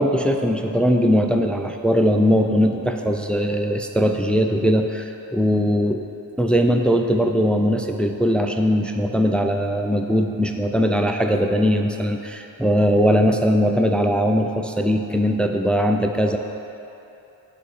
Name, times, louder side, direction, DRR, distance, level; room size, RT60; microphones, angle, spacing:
voice 1, 0.0-6.0 6.4-16.4, equal, ahead, 4 dB, 0.4 m, -20 dB
8.6 x 4.1 x 6.2 m, 2.9 s
wide cardioid pair, 70°, 46 cm